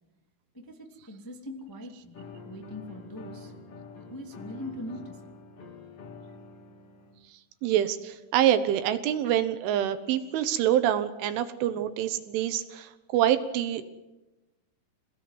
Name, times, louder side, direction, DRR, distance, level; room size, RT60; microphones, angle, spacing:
voice 1, 0.5-3.5 4.1-5.3, left 1 dB, 15° left, 1 dB, 0.8 m, -41 dB
sound 1, 2.1-7.2, left 4 dB, 35° left, 2.9 m, -46 dB
voice 2, 7.6-13.8, right 11 dB, 75° right, 11 dB, 3.3 m, -26 dB
27.5 x 18.0 x 9.4 m, 1.1 s
omnidirectional pair, 6.0 m